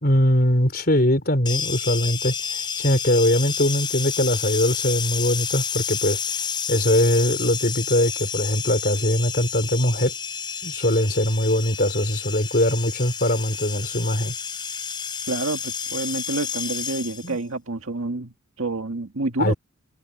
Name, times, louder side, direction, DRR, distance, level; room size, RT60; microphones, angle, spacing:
voice 1, 0.0-6.2 6.7-10.1 10.6-14.3 17.2-17.4 19.4-19.5, left 1 dB, 45° left, 4.1 m, -21 dB
sound 1, 1.5-17.4, left 7 dB, 20° left, 7.5 m, -30 dB
voice 2, 15.3-19.5, right 2 dB, 75° right, 1.9 m, -28 dB
head